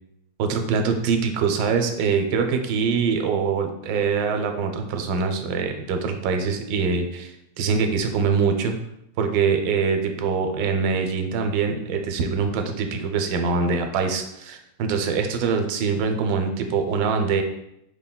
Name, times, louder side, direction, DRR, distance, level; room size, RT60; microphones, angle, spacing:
voice 1, 0.4-8.7 9.2-17.4, right 5 dB, 85° right, 6 dB, 1.3 m, -24 dB
5.3 x 3.7 x 2.2 m, 0.81 s
omnidirectional pair, 1.9 m